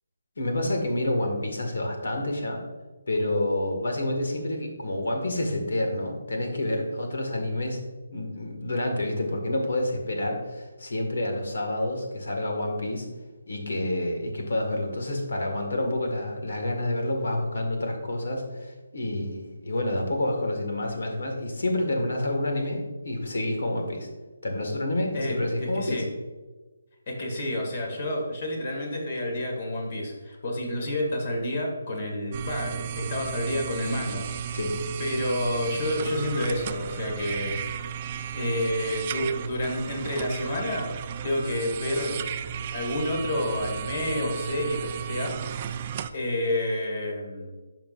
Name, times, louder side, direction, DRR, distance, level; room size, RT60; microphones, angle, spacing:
voice 1, 0.4-2.6 3.1-7.8 8.1-13.1 13.5-24.1 24.4-26.0 34.5-34.7, left 1 dB, 70° left, 3 dB, 1.9 m, -28 dB
voice 2, 25.1-26.1 27.1-34.6 35.0-37.6 38.3-42.2 42.7-45.8 46.1-47.5, left 1 dB, 45° left, 1 dB, 2.1 m, -29 dB
sound 1, 32.3-46.1, right 9 dB, 30° right, 0.3 m, -34 dB
10.5 x 5.9 x 2.6 m, 1.3 s
figure-of-eight pair, 160°, 0 cm